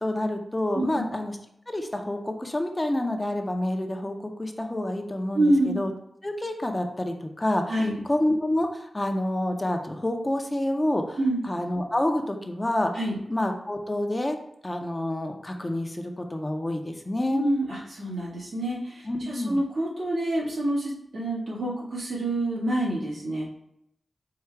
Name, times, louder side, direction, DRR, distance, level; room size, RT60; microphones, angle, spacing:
voice 1, 0.0-1.4 1.7-5.9 6.2-7.7 8.0-11.2 11.4-12.9 13.3-14.4 14.6-17.4 19.0-19.6, left 1 dB, 20° left, 4 dB, 0.6 m, -28 dB
voice 2, 5.3-5.8 7.7-8.0 11.2-11.4 12.9-13.2 17.3-23.5, right 1 dB, 80° right, -7 dB, 1.7 m, -27 dB
4.7 x 2.3 x 4.5 m, 0.76 s
wide cardioid pair, 70°, 0 cm